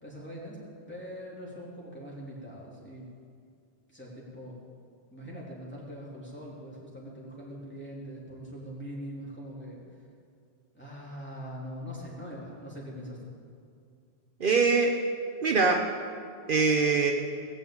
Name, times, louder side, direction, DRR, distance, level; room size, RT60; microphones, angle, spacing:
voice 1, 0.0-0.6 0.9-3.1 3.9-4.6 5.1-9.8 10.7-13.2, equal, 10° left, -6 dB, 3.5 m, -42 dB
voice 2, 14.4-15.0 15.4-15.9 16.5-17.1, right 4 dB, 55° right, 2 dB, 1.0 m, -23 dB
19.0 x 6.6 x 8.8 m, 2.3 s
omnidirectional pair, 1.1 m